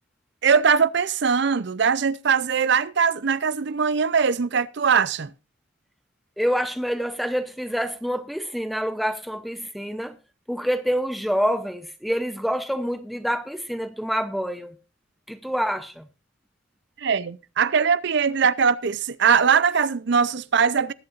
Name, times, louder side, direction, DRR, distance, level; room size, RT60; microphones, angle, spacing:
voice 1, 0.4-5.3 17.0-20.9, right 6 dB, 65° right, 0.6 m, -21 dB
voice 2, 6.4-10.2 10.5-14.8 15.3-16.0, equal, ahead, 0.7 m, -27 dB
20.5 x 8.6 x 2.5 m
head